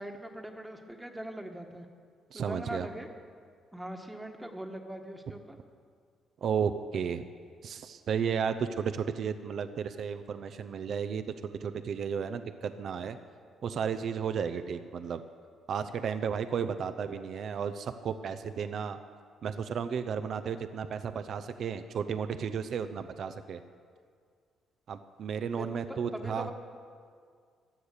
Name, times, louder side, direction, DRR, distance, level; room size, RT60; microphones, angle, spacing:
voice 1, 0.0-1.9 2.3-3.1 3.7-5.6 25.5-26.5, right 1 dB, 5° right, 4 dB, 1.4 m, -41 dB
voice 2, 2.3-2.9 6.4-7.2 7.6-13.2 13.6-15.2 15.7-19.0 19.4-23.6 24.9-26.5, right 7 dB, 60° right, 9 dB, 0.6 m, -33 dB
15.5 x 10.0 x 6.6 m, 2.1 s
cardioid pair, 90°, 0 cm